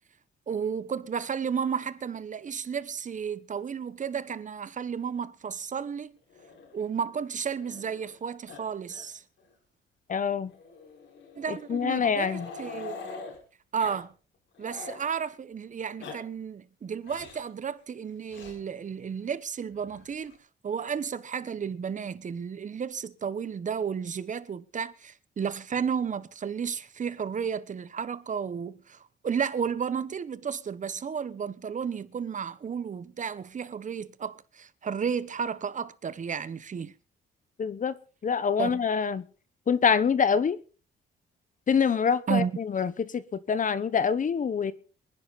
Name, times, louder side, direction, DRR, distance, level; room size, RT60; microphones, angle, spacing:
voice 1, 0.5-6.2 6.7-9.2 11.4-13.0 13.7-14.1 14.6-20.4 20.6-36.9 38.6-38.8 42.3-42.6, right 7 dB, 40° right, 1.0 m, -32 dB
Growling, 6.3-8.2 8.5-8.6 8.9-9.1 9.4-9.5 10.5-13.4 13.8-14.0 14.3-15.0 15.8-16.2 17.0-17.5 18.3-18.6 19.7-20.4, left 4 dB, 75° left, 5.2 m, -44 dB
voice 2, 10.1-10.5 11.5-12.5 37.6-38.0 38.2-39.2 39.7-40.6 41.7-43.2 43.5-44.7, left 6 dB, 40° left, 1.1 m, -25 dB
24.0 x 10.5 x 4.1 m
cardioid pair, 90°, 20 cm